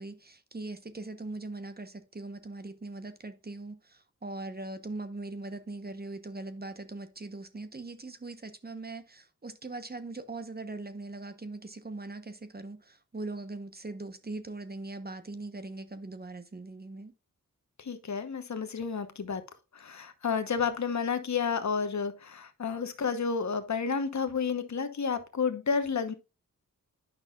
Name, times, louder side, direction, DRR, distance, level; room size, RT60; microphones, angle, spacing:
voice 1, 0.0-17.1, right 2 dB, 30° right, 1.0 m, -41 dB
voice 2, 17.8-19.4 19.7-26.1, left 5 dB, 55° left, 1.1 m, -31 dB
9.4 x 5.6 x 2.4 m
cardioid pair, 45°, 34 cm